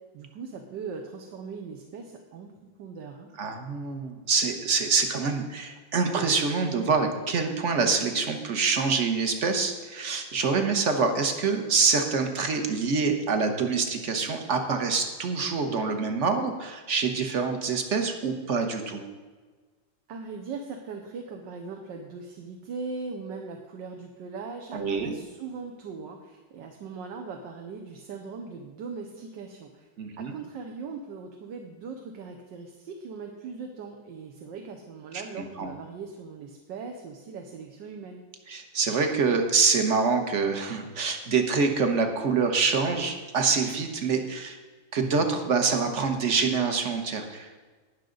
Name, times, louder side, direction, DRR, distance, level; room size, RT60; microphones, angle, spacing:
voice 1, 0.1-2.5 2.8-3.3 20.1-29.9 30.2-38.2, right 4 dB, 75° right, 3 dB, 1.5 m, -39 dB
voice 2, 3.4-19.0 24.7-25.1 30.0-30.3 35.4-35.7 38.5-44.6 44.9-47.5, right 4 dB, 45° right, 5 dB, 1.2 m, -26 dB
19.0 x 6.5 x 3.9 m, 1.4 s
omnidirectional pair, 2.1 m